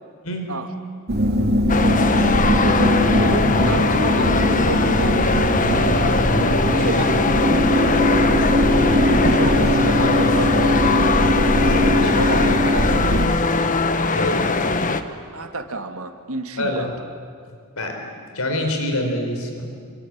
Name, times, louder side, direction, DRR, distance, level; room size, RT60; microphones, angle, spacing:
voice 1, 0.2-0.5 9.0-9.6 11.6-12.1 14.1-14.5 16.6-17.0 17.8-18.1 18.3-19.7, left 1 dB, 80° left, 4 dB, 4.5 m, -27 dB
sound 1, 1.1-13.3, equal, 50° right, 2.7 m, -20 dB
sound 2, 1.7-15.0, left 3 dB, 40° left, 1.3 m, -21 dB
voice 2, 2.6-7.2 9.2-11.3 11.9-13.4 15.3-16.9, right 2 dB, 75° right, 7 dB, 2.1 m, -29 dB
26.5 x 23.0 x 9.4 m, 2.1 s
head